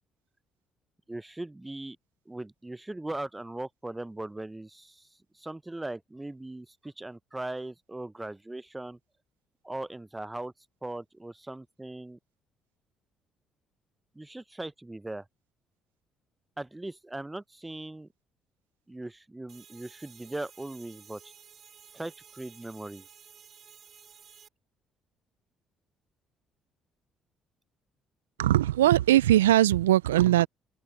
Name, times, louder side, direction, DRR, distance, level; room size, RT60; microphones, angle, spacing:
voice 1, 1.1-2.0 2.3-5.1 5.3-9.0 9.6-10.5 10.8-12.2 14.1-15.2 16.6-18.1 18.9-21.3 21.9-23.1, right 2 dB, 15° right, 0.7 m, -39 dB
sound 1, 19.5-24.5, right 8 dB, 50° right, 2.6 m, -54 dB
voice 2, 28.4-30.5, right 13 dB, 85° right, 0.5 m, -20 dB
open air
hypercardioid pair, 50°, 0 cm